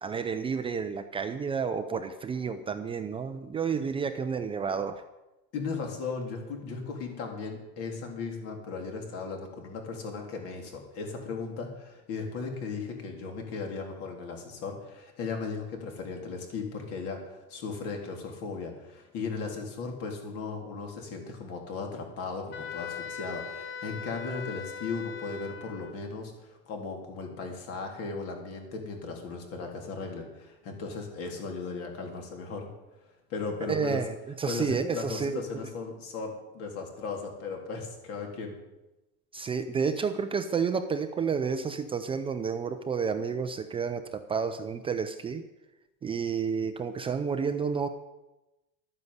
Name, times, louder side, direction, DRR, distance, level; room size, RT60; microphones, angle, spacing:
voice 1, 0.0-5.0 33.7-35.7 39.3-45.4 46.0-47.9, right 6 dB, 20° right, 8 dB, 0.6 m, -30 dB
voice 2, 5.5-32.7 33.3-34.0 34.5-38.6, left 4 dB, 50° left, 2 dB, 3.6 m, -37 dB
Wind instrument woodwind instrument, 22.5-26.0, left 7 dB, 80° left, 1.9 m, -40 dB
12.0 x 9.6 x 8.1 m, 1.0 s
cardioid pair, 155°, 30 cm